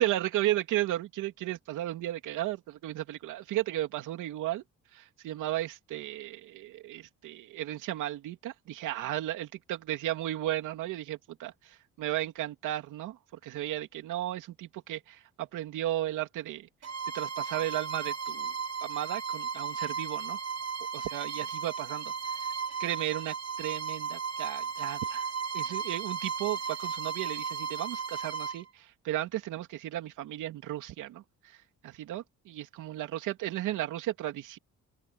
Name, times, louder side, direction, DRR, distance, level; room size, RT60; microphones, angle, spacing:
voice 1, 0.0-4.6 4.9-16.7 17.1-18.5 18.8-20.4 20.9-22.1 22.8-25.3 25.5-34.6, right 14 dB, 90° right, 2.9 m, -34 dB
Bowed string instrument, 16.8-28.6, right 6 dB, 55° right, 3.8 m, -35 dB
open air
cardioid pair, 90°, 30 cm